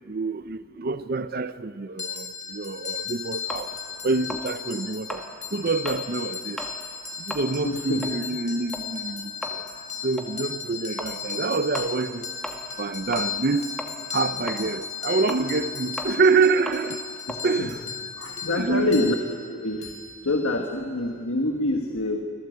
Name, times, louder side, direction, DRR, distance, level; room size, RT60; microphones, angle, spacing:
voice 1, 0.1-2.3 2.5-3.7 4.0-5.2 5.5-6.6 7.3-9.3 10.0-12.3 12.8-13.6 14.1-17.0 17.4-17.7 18.5-19.1, right 4 dB, 45° right, 0.6 m, -26 dB
sound 1, 2.0-20.8, left 7 dB, 35° left, 3.2 m, -36 dB
sound 2, 3.5-6.1 6.5-6.8 7.1-13.5 13.8-18.6, equal, 5° left, 1.6 m, -38 dB
voice 2, 7.6-8.0 17.3-17.8 18.2-19.2 19.5-19.9 20.2-22.2, left 2 dB, 85° left, 1.6 m, -26 dB
25.5 x 16.5 x 8.0 m
head